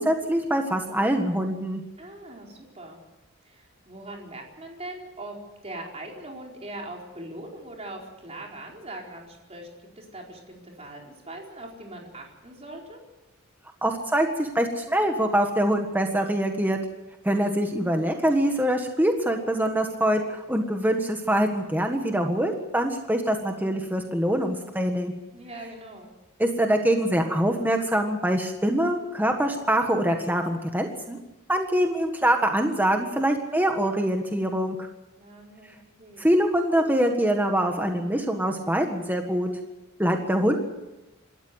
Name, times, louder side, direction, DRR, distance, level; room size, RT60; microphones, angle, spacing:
voice 1, 0.0-1.8 13.8-16.8 17.2-25.1 26.4-31.2 31.5-34.9 36.2-39.5 40.0-40.6, right 1 dB, 10° right, 4 dB, 1.6 m, -24 dB
voice 2, 2.0-3.0 3.4-5.4 5.6-9.7 10.0-13.0 25.3-26.1 35.2-36.3, right 1 dB, 30° right, 0 dB, 4.6 m, -41 dB
26.5 x 13.5 x 8.1 m, 1.0 s
head